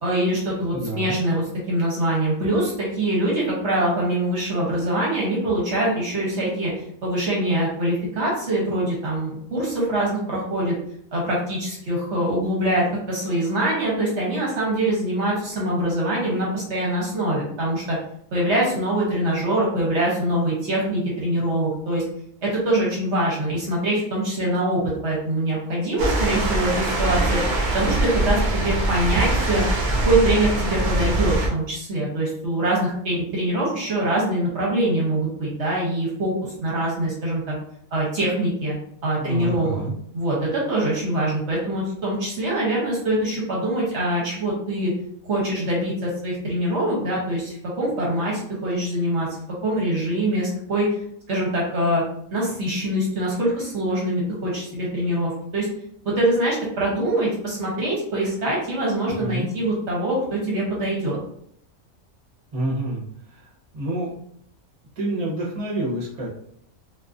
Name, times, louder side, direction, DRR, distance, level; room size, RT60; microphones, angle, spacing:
voice 1, 0.0-10.8 11.1-18.0 18.3-22.0 22.4-27.4 27.7-29.6 30.0-36.3 36.6-37.5 37.9-38.7 39.0-39.8 40.1-44.9 45.2-49.3 49.6-50.9 51.3-52.0 52.3-55.7 56.0-61.2, right 1 dB, 60° right, -4 dB, 0.9 m, -24 dB
voice 2, 0.7-1.2 39.2-40.0 59.2-59.5 62.5-63.0 63.3-63.4 63.7-64.1 65.0-66.3, right 1 dB, 35° right, -4 dB, 0.6 m, -28 dB
sound 1, 26.0-31.5, right 2 dB, 75° right, 0.4 m, -23 dB
2.4 x 2.4 x 2.4 m, 0.69 s
omnidirectional pair, 1.5 m